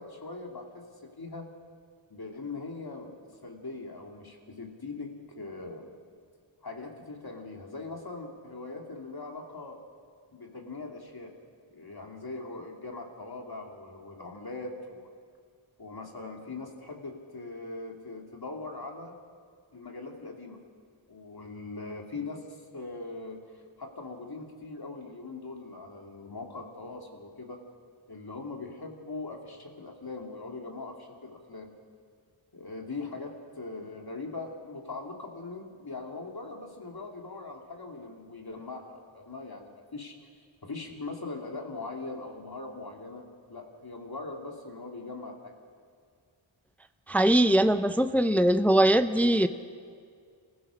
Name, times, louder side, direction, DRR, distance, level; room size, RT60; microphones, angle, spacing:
voice 1, 0.0-1.5 2.1-5.9 6.6-9.8 10.3-11.3 11.7-15.2 15.8-19.2 19.7-20.6 21.1-27.6 28.1-31.7 32.5-43.2 43.5-45.5, left 3 dB, 45° left, 1 dB, 2.8 m, -41 dB
voice 2, 47.1-49.5, right 1 dB, 5° left, 10 dB, 0.6 m, -21 dB
27.0 x 15.0 x 6.3 m, 2.1 s
wide cardioid pair, 60°, 49 cm